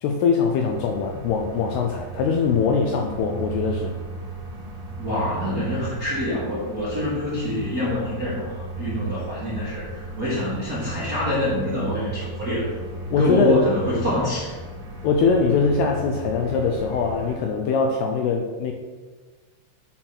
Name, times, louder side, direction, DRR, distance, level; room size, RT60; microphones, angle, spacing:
voice 1, 0.0-3.9 13.1-13.7 15.0-18.7, left 5 dB, 80° left, 3 dB, 2.4 m, -22 dB
sound 1, 0.6-17.4, right 2 dB, 55° right, 1.8 m, -35 dB
voice 2, 5.0-12.7 13.2-14.6, left 1 dB, 40° right, -9 dB, 1.3 m, -26 dB
10.5 x 4.1 x 6.1 m, 1.3 s
omnidirectional pair, 5.2 m